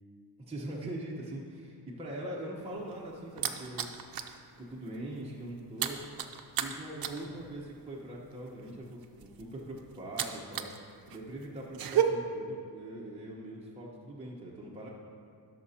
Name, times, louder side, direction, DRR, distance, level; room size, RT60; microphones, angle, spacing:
voice 1, 0.4-3.9 4.6-6.0 6.6-14.9, right 1 dB, 15° right, -5 dB, 1.1 m, -42 dB
sound 1, 2.6-4.4 4.7-5.0 5.2-10.8 11.1-12.0, right 11 dB, 60° right, 0.7 m, -34 dB
16.0 x 6.8 x 2.9 m, 2.2 s
wide cardioid pair, 120°, 40 cm